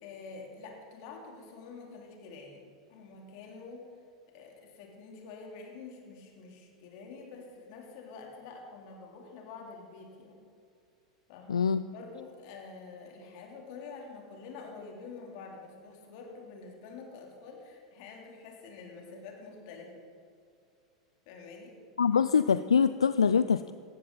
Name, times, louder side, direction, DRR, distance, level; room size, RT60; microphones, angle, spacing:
voice 1, 0.0-3.9 4.3-10.4 11.3-11.7 11.9-19.9 21.2-21.8, left 4 dB, 55° left, 1 dB, 3.3 m, -47 dB
voice 2, 11.5-11.8 22.0-23.7, left 6 dB, 80° left, 13 dB, 0.3 m, -24 dB
18.0 x 15.0 x 4.0 m, 2.4 s
figure-of-eight pair, 85°, 3 cm